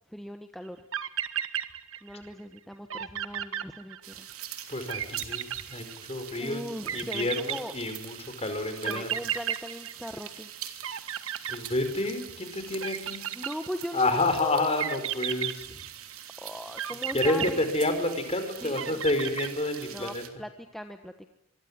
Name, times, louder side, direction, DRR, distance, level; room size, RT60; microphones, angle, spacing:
voice 1, 0.1-0.8 2.0-4.3 6.4-7.7 8.8-10.5 13.3-14.7 16.4-17.6 18.6-19.0 19.9-21.3, equal, ahead, 6 dB, 1.2 m, -39 dB
sound 1, 0.7-0.8 0.9-2.3 2.6-2.7 2.9-4.3 4.9-6.3 6.9-8.2 8.8-10.5 10.8-12.2 12.8-14.0 14.8-16.2 16.8-18.3 18.8-20.0, right 10 dB, 65° right, 1.6 m, -34 dB
sound 2, 4.0-20.3, right 10 dB, 80° right, 3.2 m, -44 dB
voice 2, 4.7-9.2 11.5-13.2 13.9-15.7 17.1-20.2, left 2 dB, 30° left, 8 dB, 4.9 m, -29 dB
26.0 x 23.5 x 9.8 m, 0.76 s
head